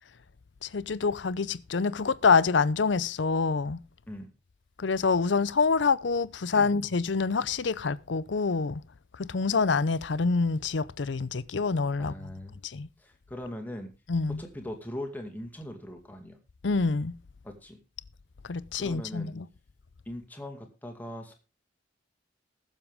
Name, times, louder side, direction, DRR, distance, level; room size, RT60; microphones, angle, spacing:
voice 1, 0.6-3.8 4.8-8.8 9.1-12.3 12.6-12.9 14.1-14.4 16.6-17.2 18.4-19.5, left 4 dB, 75° left, 0.6 m, -26 dB
voice 2, 12.0-12.6 13.0-13.9 14.4-16.4 17.4-17.8 18.8-19.3 20.1-21.4, left 1 dB, 10° left, 2.2 m, -40 dB
20.5 x 7.4 x 3.6 m
head